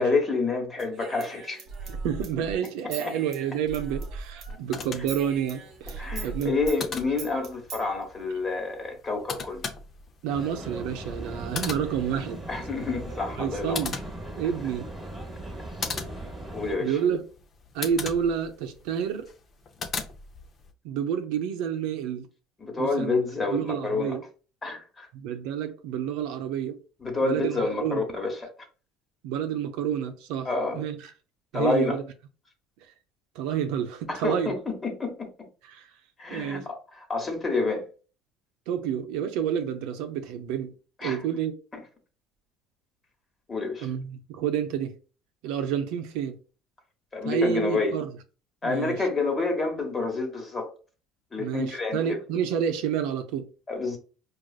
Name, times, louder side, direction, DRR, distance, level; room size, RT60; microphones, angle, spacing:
voice 1, 0.0-1.6 3.0-3.1 6.0-9.6 12.5-13.8 16.5-16.9 22.6-24.2 24.6-25.1 27.0-28.3 30.4-30.8 31.5-32.0 34.1-35.5 36.2-36.6 37.1-37.8 41.0-41.2 43.5-43.9 47.1-47.9 48.6-50.7 51.3-52.2 53.7-54.0, left 3 dB, 25° left, 1.2 m, -28 dB
Human voice / Scissors, 0.8-4.6 4.8-7.8, right 4 dB, 55° right, 1.0 m, -39 dB
voice 2, 1.9-6.5 10.2-12.4 13.4-14.0 14.4-14.9 16.8-17.2 17.7-19.3 20.8-22.3 22.8-23.2 23.5-24.2 25.1-26.8 27.2-28.0 29.2-31.1 31.5-32.0 33.4-34.6 35.6-35.9 36.3-36.7 38.7-40.7 41.0-41.5 43.8-44.9 45.4-46.4 47.2-48.2 48.6-49.0 51.4-53.5, right 8 dB, 75° right, 0.5 m, -29 dB
sound 1, 4.5-20.7, left 5 dB, 40° left, 0.6 m, -40 dB
sound 2, 10.3-16.8, right 1 dB, 5° right, 1.2 m, -39 dB
4.7 x 2.4 x 2.4 m
supercardioid pair, 100°, 0 cm